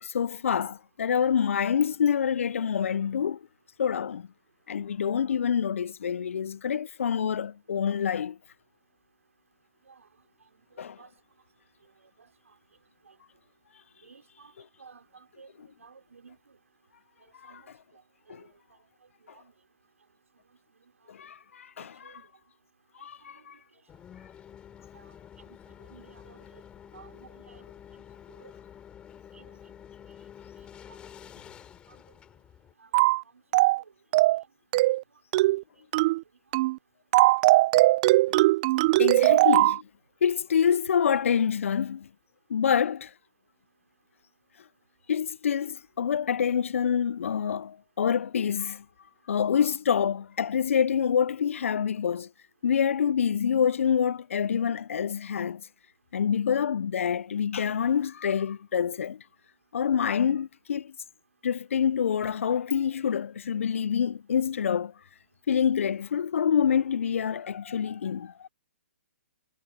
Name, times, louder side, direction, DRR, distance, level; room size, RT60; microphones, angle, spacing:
voice 1, 0.0-3.4 3.8-4.3 4.7-8.4 10.8-11.0 17.4-17.5 18.3-18.4 21.1-22.2 23.0-23.5 39.0-39.8 40.2-42.1 42.5-43.1 45.1-48.8 49.3-52.3 52.6-55.6 56.1-59.2 59.7-60.9 61.4-64.9 65.5-68.5, left 7 dB, 70° left, 0.4 m, -26 dB
voice 2, 14.0-14.5 14.8-16.4 17.4-17.6 18.3-18.4 19.3-19.5 21.8-22.2 24.9-25.0 25.5-25.6 25.9-26.6 26.9-27.6 28.4-28.5 29.3-29.5 32.8-32.9 33.8-33.9 34.8-34.9 39.3-39.4, right 5 dB, 85° right, 4.6 m, -53 dB
sound 1, 23.9-32.7, left 9 dB, 15° left, 3.4 m, -49 dB
sound 2, 32.9-33.2 33.5-33.8 34.1-34.4 34.7-35.0 35.3-35.6 35.9-36.2 36.5-36.8 37.1-39.8, right 19 dB, 30° right, 0.5 m, -20 dB
hypercardioid pair, 150°, 7 cm